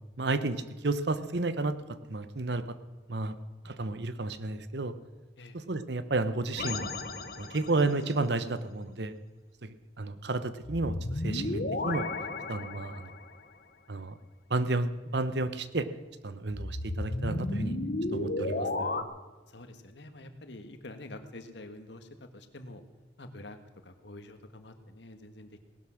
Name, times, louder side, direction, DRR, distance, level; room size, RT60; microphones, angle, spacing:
voice 1, 0.2-2.8 3.1-3.3 3.6-4.9 5.5-6.9 7.4-9.1 9.6-12.1 12.5-13.0 13.9-14.2 14.5-15.9 16.2-17.8 18.1-19.1, right 2 dB, 70° right, 12 dB, 0.9 m, -32 dB
sound 1, 6.6-7.9 10.6-13.3 16.5-19.0, left 2 dB, 55° left, 1.1 m, -33 dB
voice 2, 19.5-22.8 23.2-25.6, left 2 dB, 75° left, 8 dB, 1.6 m, -47 dB
18.5 x 12.0 x 6.4 m, 1.2 s
head